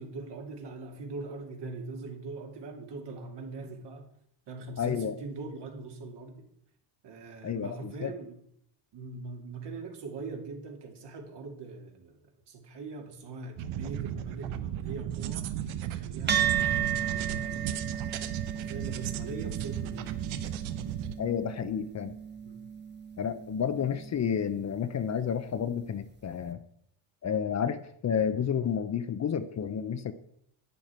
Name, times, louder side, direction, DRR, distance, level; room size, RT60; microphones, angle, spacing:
voice 1, 0.0-4.1 4.5-6.4 7.0-8.4 8.9-12.2 12.5-15.4 15.9-18.2 18.5-20.1 22.4-22.7, right 3 dB, 60° right, 2 dB, 2.5 m, -42 dB
voice 2, 4.8-5.1 7.4-8.1 21.2-22.2 23.2-26.6 27.2-30.1, left 7 dB, 35° left, 11 dB, 0.7 m, -30 dB
sound 1, 13.6-21.1, right 11 dB, 90° right, 1.0 m, -35 dB
sound 2, 16.3-24.9, right 9 dB, 20° right, 1.1 m, -35 dB
11.0 x 9.2 x 4.4 m, 0.71 s
cardioid pair, 110°, 47 cm